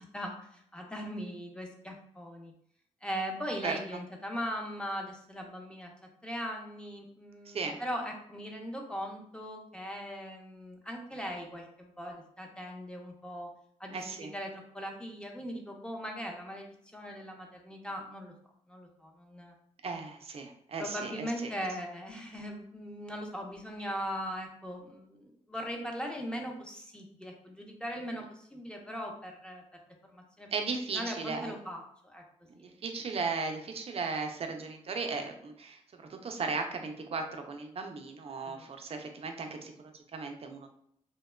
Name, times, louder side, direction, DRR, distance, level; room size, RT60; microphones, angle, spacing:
voice 1, 0.0-2.5 3.0-5.9 6.2-13.5 13.8-18.3 18.7-19.5 20.8-29.6 30.0-30.5 30.9-32.2 32.6-32.7 38.5-38.7, equal, 5° left, 1 dB, 0.6 m, -39 dB
voice 2, 7.5-7.8 13.9-14.3 19.8-21.5 30.5-31.5 32.5-40.7, right 4 dB, 50° right, 4 dB, 0.5 m, -36 dB
2.8 x 2.2 x 2.2 m, 0.68 s
cardioid pair, 75°, 13 cm